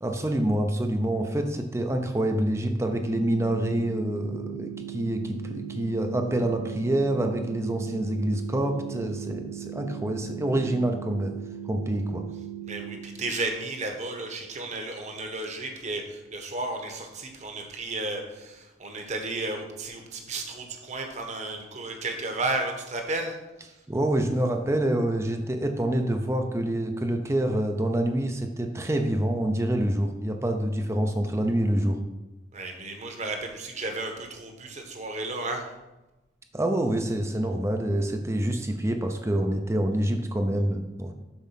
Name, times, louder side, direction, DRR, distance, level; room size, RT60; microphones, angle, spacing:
voice 1, 0.0-11.3 11.7-12.2 23.9-32.0 36.5-41.1, right 1 dB, 15° right, 5 dB, 0.5 m, -26 dB
sound 1, 2.9-13.0, right 11 dB, 85° left, 1.2 m, -38 dB
voice 2, 12.6-23.4 32.5-35.7, right 2 dB, 40° right, 3 dB, 1.1 m, -33 dB
7.2 x 4.4 x 5.7 m, 1.0 s
head